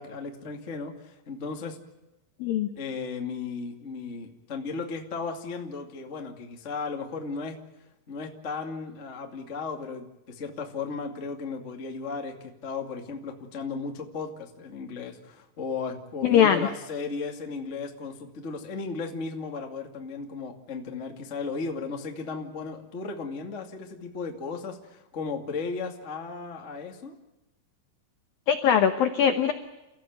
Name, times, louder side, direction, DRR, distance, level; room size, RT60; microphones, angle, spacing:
voice 1, 0.0-1.8 2.8-7.6 8.1-27.1, left 4 dB, 60° left, 3 dB, 0.7 m, -35 dB
voice 2, 16.2-16.7 28.5-29.5, left 9 dB, 90° left, 7 dB, 2.0 m, -21 dB
29.5 x 15.5 x 9.4 m, 1.0 s
omnidirectional pair, 5.8 m